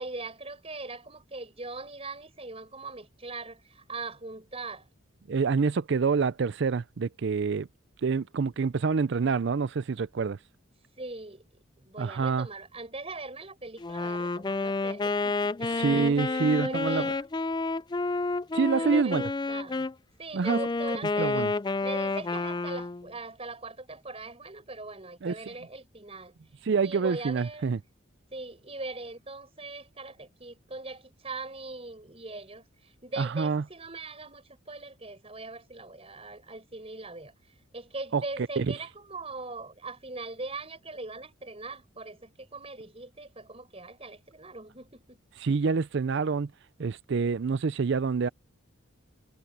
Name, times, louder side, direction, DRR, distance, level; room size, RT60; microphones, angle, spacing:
voice 1, 0.0-4.9 11.0-11.4 11.8-17.2 18.7-19.8 20.2-21.5 21.8-26.3 26.8-27.8 28.3-32.6 33.0-37.3 37.7-45.2, right 3 dB, 30° right, 5.8 m, -41 dB
voice 2, 5.3-7.7 8.0-10.4 12.0-12.5 15.6-17.2 18.5-19.2 20.3-20.6 21.2-21.5 25.2-25.5 26.6-27.8 33.2-33.7 38.1-38.2 38.6-38.8 45.4-46.5 46.8-48.3, right 5 dB, 55° right, 0.4 m, -27 dB
Wind instrument woodwind instrument, 13.8-19.9 20.4-23.1, left 3 dB, 20° left, 0.4 m, -30 dB
head